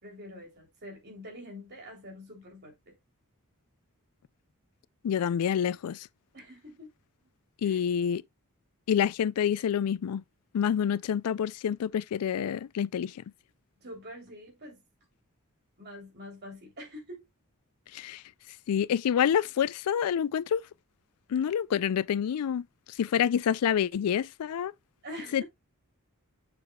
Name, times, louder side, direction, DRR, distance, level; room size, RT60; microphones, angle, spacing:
voice 1, 0.0-2.9 6.3-6.9 7.6-7.8 13.8-14.8 15.8-17.3 25.0-25.4, left 1 dB, 50° right, 3.2 m, -45 dB
voice 2, 5.0-6.1 7.6-8.2 8.9-10.2 10.5-13.2 17.9-18.2 18.7-20.6 21.3-24.7 25.3-25.4, left 8 dB, 80° left, 0.3 m, -27 dB
7.0 x 6.4 x 2.3 m
head